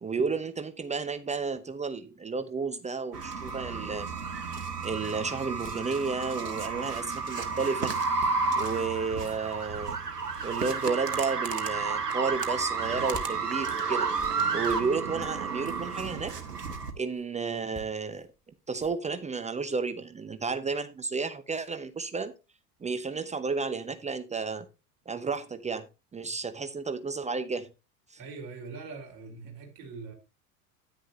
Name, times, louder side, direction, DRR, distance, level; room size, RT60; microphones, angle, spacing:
voice 1, 0.0-4.1 4.8-7.9 8.6-10.0 10.4-14.1 14.5-16.3 17.0-18.3 18.7-22.3 22.8-24.7 25.1-25.9 26.1-27.7 28.1-28.2, right 4 dB, 15° right, 0.7 m, -32 dB
sound 1, 2.8-2.9 3.4-4.1 4.6-5.2 5.6-5.9 6.2-6.4 6.7-7.6 8.2-8.4 8.7-8.8 9.1-9.8 12.7-14.9 15.2-17.2 17.6-19.2, left 2 dB, 15° left, 2.6 m, -50 dB
sound 2, 3.1-16.9, right 4 dB, 80° right, 1.4 m, -31 dB
voice 2, 28.2-30.1, right 4 dB, 45° right, 4.2 m, -42 dB
10.0 x 10.0 x 2.7 m
figure-of-eight pair, 70°, 47 cm